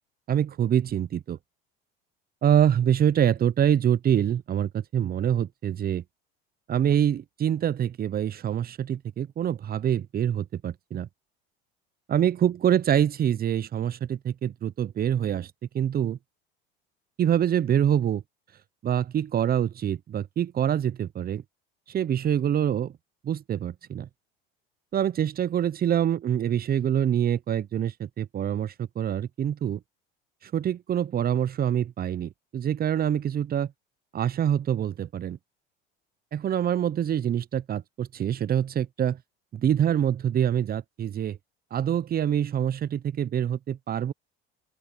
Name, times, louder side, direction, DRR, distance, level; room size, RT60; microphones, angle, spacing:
voice 1, 0.3-1.4 2.4-6.0 6.7-11.1 12.1-16.2 17.2-18.2 18.8-21.4 21.9-22.9 23.2-24.1 24.9-29.8 30.4-33.7 34.1-35.4 36.3-39.2 39.5-41.4 41.7-44.1, right 9 dB, 30° right, 0.7 m, -25 dB
open air
hypercardioid pair, 80°, 29 cm